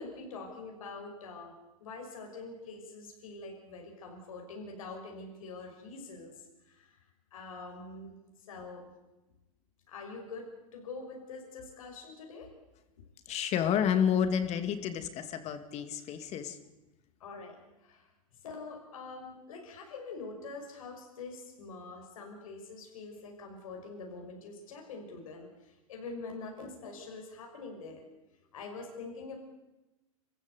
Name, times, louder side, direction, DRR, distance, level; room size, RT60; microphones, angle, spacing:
voice 1, 0.0-1.5 1.8-7.0 7.3-8.9 9.9-12.5 17.2-17.6 17.8-18.1 18.4-28.0 28.5-29.4, left 3 dB, 80° left, 2 dB, 6.2 m, -45 dB
voice 2, 13.3-16.6, left 8 dB, 40° left, 9 dB, 2.6 m, -30 dB
28.0 x 15.0 x 8.3 m, 1.1 s
hypercardioid pair, 115°, 17 cm